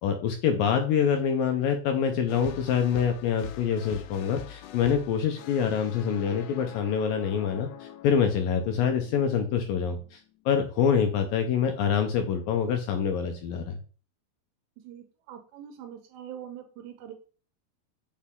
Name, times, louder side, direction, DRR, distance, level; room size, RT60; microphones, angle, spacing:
voice 1, 0.0-13.8, left 7 dB, 75° left, 5 dB, 2.2 m, -26 dB
sound 1, 2.3-10.5, left 11 dB, 90° left, 2.9 m, -45 dB
voice 2, 14.8-17.1, right 10 dB, 90° right, 5 dB, 3.1 m, -43 dB
8.6 x 6.2 x 3.7 m, 0.39 s
omnidirectional pair, 4.7 m